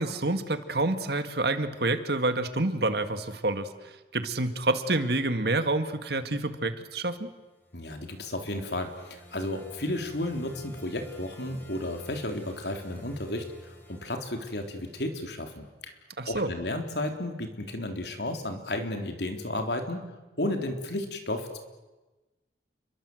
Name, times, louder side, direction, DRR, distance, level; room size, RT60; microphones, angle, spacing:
voice 1, 0.0-7.3 16.2-16.5, right 2 dB, 60° right, 9 dB, 2.0 m, -28 dB
sound 1, 7.4-15.6, left 1 dB, 10° left, 3.6 m, -51 dB
voice 2, 7.7-15.9 16.3-20.1 20.4-21.6, left 1 dB, 65° left, 5 dB, 3.6 m, -33 dB
30.0 x 22.5 x 7.9 m, 1.2 s
head